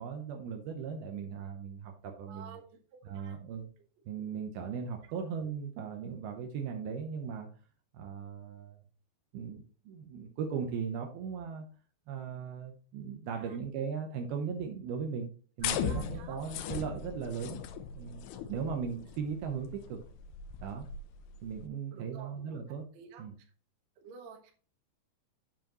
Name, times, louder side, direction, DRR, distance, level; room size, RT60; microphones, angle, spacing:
voice 1, 0.0-2.6 3.0-3.7 4.1-7.5 7.9-8.8 9.3-11.7 12.1-15.3 15.6-17.6 17.9-20.0 20.6-20.9 21.4-22.8 23.2-23.3, right 6 dB, 75° right, 4 dB, 2.6 m, -38 dB
voice 2, 2.3-2.8 3.0-3.4 13.4-13.6 15.6-16.4 18.5-18.8 21.9-22.3 22.9-23.5 24.0-24.5, right 6 dB, 55° right, 3 dB, 2.0 m, -50 dB
sound 1, 15.6-21.7, left 8 dB, 80° left, 2.7 m, -39 dB
7.5 x 7.4 x 3.0 m, 0.41 s
omnidirectional pair, 4.9 m